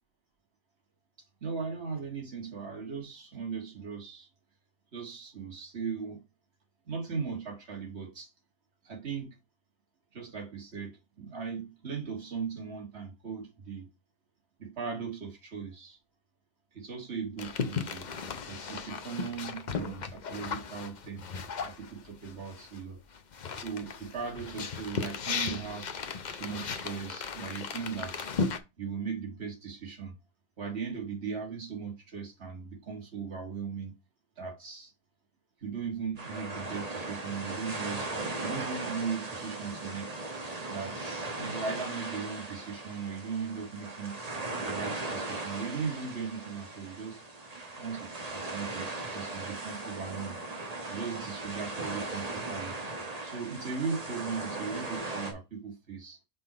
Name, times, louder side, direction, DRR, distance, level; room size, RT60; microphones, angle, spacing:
voice 1, 1.4-4.3 4.9-6.2 6.9-8.3 8.8-9.4 10.1-13.9 14.6-16.0 16.7-18.1 18.4-21.3 21.6-23.0 23.5-25.9 26.3-28.3 28.8-30.2 30.6-33.9 34.4-34.9 35.6-40.1 40.7-44.2 44.6-47.2 47.8-50.4 50.9-52.7 53.2-56.2, right 5 dB, 70° right, 1.9 m, -38 dB
sound 1, 17.4-22.8 23.1-28.6, left 5 dB, 45° left, 0.7 m, -36 dB
sound 2, 36.2-55.3, right 2 dB, 35° right, 1.2 m, -38 dB
5.6 x 4.1 x 4.2 m
omnidirectional pair, 1.2 m